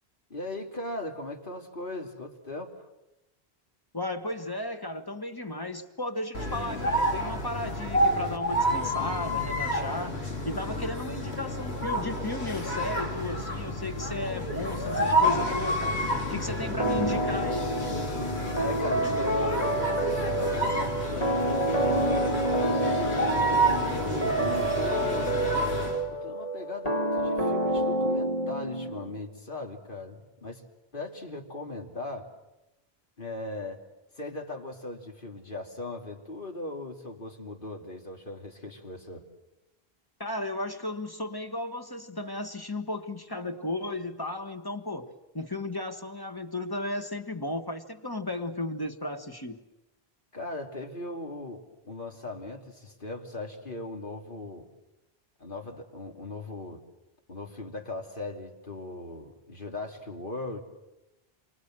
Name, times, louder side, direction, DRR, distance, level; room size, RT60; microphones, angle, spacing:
voice 1, 0.3-2.7 18.5-25.4 26.1-30.6 30.9-32.3 33.2-33.8 34.2-39.3 50.3-54.7 55.4-56.8 57.3-60.6, left 2 dB, 55° left, 3.0 m, -38 dB
voice 2, 3.9-16.0 16.3-17.7 40.2-49.6, left 2 dB, 20° left, 1.6 m, -35 dB
sound 1, 6.3-26.0, equal, 85° left, 3.4 m, -29 dB
sound 2, 16.8-29.2, right 1 dB, 40° left, 2.2 m, -28 dB
28.5 x 25.0 x 7.8 m
omnidirectional pair, 1.0 m